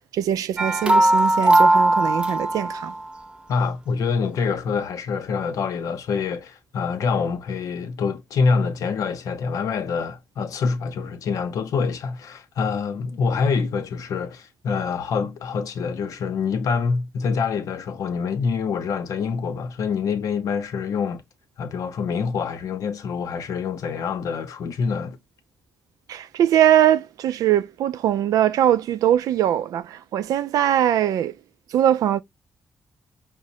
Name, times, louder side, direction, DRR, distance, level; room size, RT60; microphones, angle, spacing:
voice 1, 0.1-2.9 26.1-31.3 31.7-32.2, right 11 dB, 85° right, 0.3 m, -21 dB
sound 1, 0.6-3.0, right 1 dB, 15° right, 0.4 m, -18 dB
voice 2, 3.5-21.2 21.6-25.2, left 5 dB, 75° left, 0.7 m, -26 dB
5.0 x 2.1 x 2.6 m
cardioid pair, 90°, 6 cm